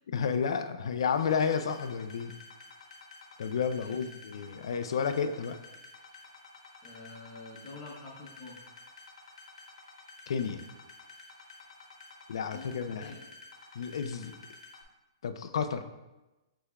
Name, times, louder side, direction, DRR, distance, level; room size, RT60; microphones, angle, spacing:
voice 1, 0.1-2.4 3.4-5.6 10.3-10.7 12.3-13.2 13.7-14.3 15.2-15.8, left 6 dB, 65° left, 9 dB, 0.3 m, -31 dB
sound 1, 1.1-14.8, left 3 dB, 90° left, 1.0 m, -51 dB
voice 2, 6.8-8.7 12.5-13.2, left 2 dB, 20° left, -3 dB, 0.8 m, -47 dB
6.4 x 3.4 x 2.3 m, 1.0 s
hypercardioid pair, 170°, 3 cm